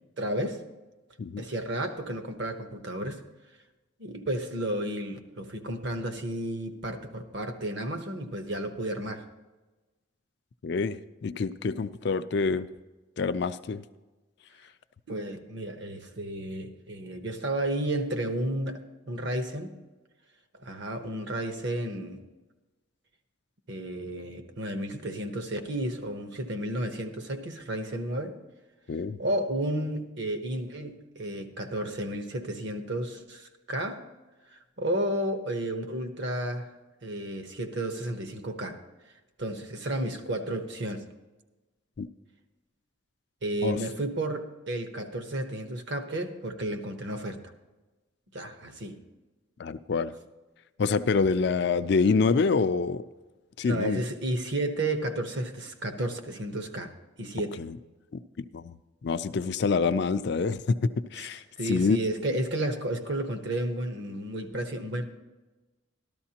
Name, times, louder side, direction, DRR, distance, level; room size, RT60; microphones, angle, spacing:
voice 1, 0.2-0.6 1.4-3.2 4.0-9.2 15.1-18.8 19.1-19.7 20.6-22.2 23.7-28.4 29.2-34.0 34.5-36.7 37.0-38.8 39.4-41.0 43.4-47.4 48.3-49.0 53.6-56.9 57.2-57.6 61.6-65.1, right 1 dB, 55° right, 7 dB, 1.0 m, -32 dB
voice 2, 10.6-12.7 13.2-13.8 28.9-29.2 42.0-42.1 43.6-43.8 49.6-50.1 50.8-53.0 53.6-54.0 57.6-57.8 58.4-58.7 59.0-62.0, left 4 dB, 55° left, 13 dB, 0.4 m, -26 dB
13.5 x 12.5 x 2.9 m, 1.2 s
head